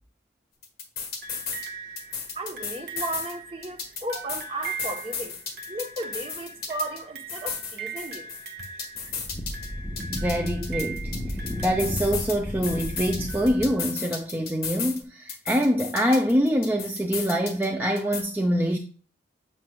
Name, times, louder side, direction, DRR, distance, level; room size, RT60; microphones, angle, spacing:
sound 1, 0.6-1.7 2.0-3.3 3.6-7.0 7.3-9.7 10.0-12.4 12.6-15.0 15.3-17.7 18.0-18.2, left 6 dB, 55° left, 1.5 m, -34 dB
sound 2, 1.2-14.0 15.0-15.1, right 5 dB, 60° right, 0.7 m, -41 dB
voice 1, 2.3-5.4 5.7-8.3, right 1 dB, 30° right, 0.9 m, -34 dB
Wind, 8.9-13.8, left 1 dB, 10° left, 0.8 m, -33 dB
voice 2, 10.1-18.8, equal, 10° right, 0.4 m, -25 dB
7.7 x 6.3 x 2.2 m
head